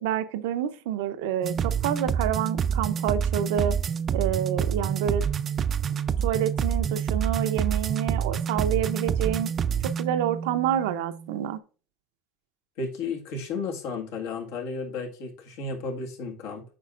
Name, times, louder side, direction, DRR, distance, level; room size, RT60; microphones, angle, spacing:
voice 1, 0.0-3.8 4.1-5.3 6.2-9.5 9.8-11.6, right 10 dB, 85° right, 0.7 m, -28 dB
sound 1, 1.4-11.3, right 7 dB, 35° right, 0.4 m, -27 dB
voice 2, 12.8-16.6, left 4 dB, 80° left, 1.8 m, -33 dB
8.6 x 5.7 x 2.5 m
supercardioid pair, 120°, 0 cm